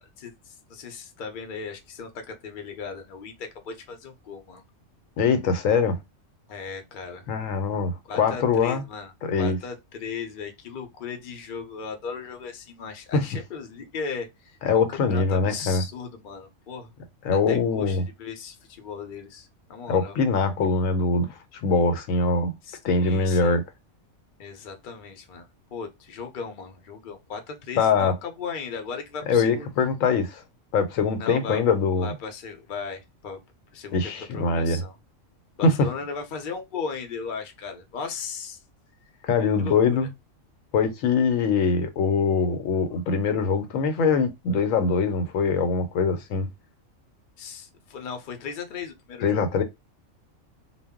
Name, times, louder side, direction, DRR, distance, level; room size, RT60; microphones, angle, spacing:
voice 1, 0.0-4.6 6.5-7.3 8.1-9.1 9.4-16.9 17.3-20.1 22.6-23.6 24.4-29.7 31.2-31.6 32.0-33.4 33.7-35.0 35.5-38.6 39.6-40.1 47.4-49.4, left 5 dB, 50° left, 0.7 m, -37 dB
voice 2, 5.2-6.0 7.3-8.8 9.2-9.6 13.1-13.3 14.6-15.8 17.2-18.0 19.9-22.5 22.8-23.6 27.8-28.1 29.3-30.4 30.7-32.1 33.9-34.8 35.6-35.9 39.2-40.1 40.7-46.5 49.2-49.6, left 4 dB, 80° left, 1.0 m, -23 dB
2.2 x 2.0 x 3.5 m
omnidirectional pair, 1.4 m